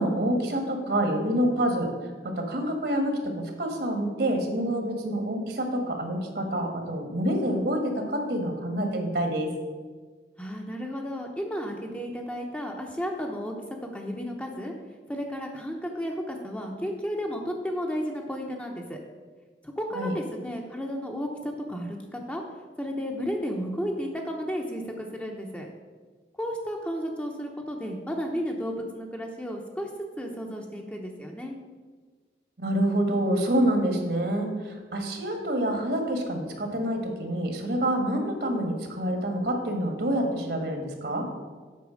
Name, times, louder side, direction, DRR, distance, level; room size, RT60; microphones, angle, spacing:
voice 1, 0.0-1.9 2.2-9.5 19.9-20.1 32.6-41.2, right 1 dB, 60° right, 4 dB, 1.5 m, -27 dB
voice 2, 10.4-13.5 13.9-14.7 15.1-19.0 19.6-22.4 22.8-25.7 26.4-29.9 30.2-31.5, equal, 5° left, 1 dB, 0.8 m, -33 dB
8.3 x 5.6 x 6.4 m, 1.5 s
head